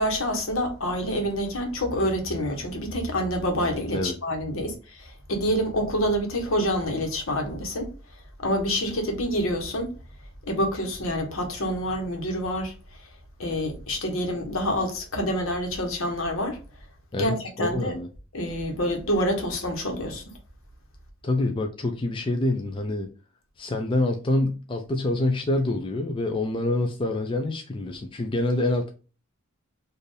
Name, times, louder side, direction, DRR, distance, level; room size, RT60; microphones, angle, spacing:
voice 1, 0.0-7.9 8.4-9.9 10.4-12.7 13.4-16.6 17.2-17.3 17.6-17.9 18.3-20.2, equal, 70° left, 1.2 m, -27 dB
voice 2, 17.1-18.1 21.2-23.1 23.6-28.9, left 2 dB, 25° left, 0.4 m, -26 dB
4.3 x 2.6 x 3.3 m
head